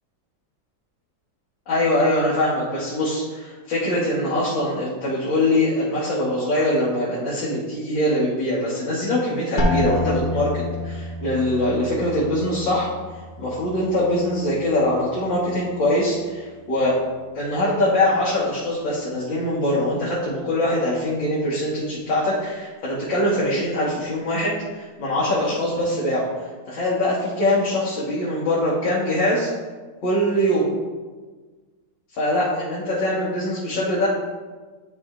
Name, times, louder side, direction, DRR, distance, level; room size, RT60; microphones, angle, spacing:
voice 1, 1.7-12.9 13.4-17.0 17.3-26.3 26.7-29.5 30.0-30.7 32.2-34.1, left 1 dB, 80° left, -9 dB, 2.1 m, -23 dB
sound 1, 9.6-15.2 15.5-16.2 16.8-17.2, left 2 dB, 45° left, 0.7 m, -29 dB
10.5 x 5.0 x 2.5 m, 1.4 s
omnidirectional pair, 2.0 m